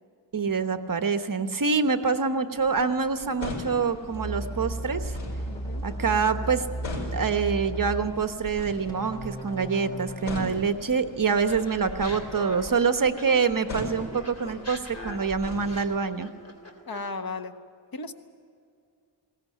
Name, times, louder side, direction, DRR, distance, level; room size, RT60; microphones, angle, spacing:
voice 1, 0.3-5.2 5.8-6.7 7.1-16.3, right 5 dB, 45° right, 9 dB, 1.1 m, -26 dB
sound 1, 2.6-16.0, left 2 dB, 90° left, 5.7 m, -41 dB
sound 2, 4.1-8.1 8.9-10.4, right 1 dB, 10° left, 2.8 m, -34 dB
voice 2, 5.5-5.8 16.9-17.6 17.9-18.1, left 3 dB, 50° left, 8 dB, 1.5 m, -35 dB
Laughter, 11.4-13.6 13.9-17.2, left 2 dB, 35° left, 3.2 m, -42 dB
21.0 x 18.5 x 9.3 m, 2.3 s
wide cardioid pair, 110°, 46 cm